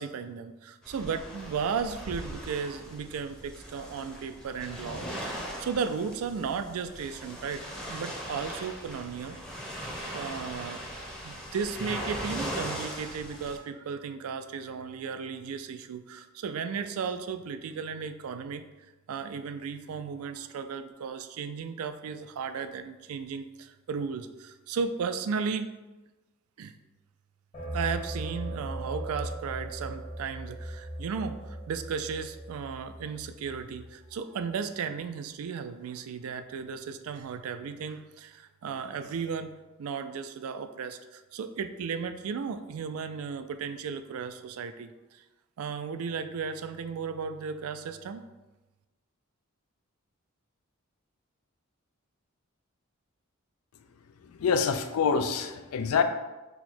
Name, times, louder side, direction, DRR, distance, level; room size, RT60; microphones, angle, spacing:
voice 1, 0.0-7.6 7.9-9.4 10.1-10.8 11.2-18.6 19.1-25.7 26.6-26.7 27.7-39.5 39.8-45.2 45.6-48.2, right 6 dB, 85° right, 10 dB, 0.3 m, -35 dB
sound 1, 0.8-13.6, equal, 5° left, 0.7 m, -39 dB
sound 2, 27.5-34.1, right 1 dB, 30° left, 1.1 m, -38 dB
voice 2, 54.4-56.0, left 6 dB, 85° left, 8 dB, 0.4 m, -26 dB
4.5 x 2.2 x 4.2 m, 1.1 s
head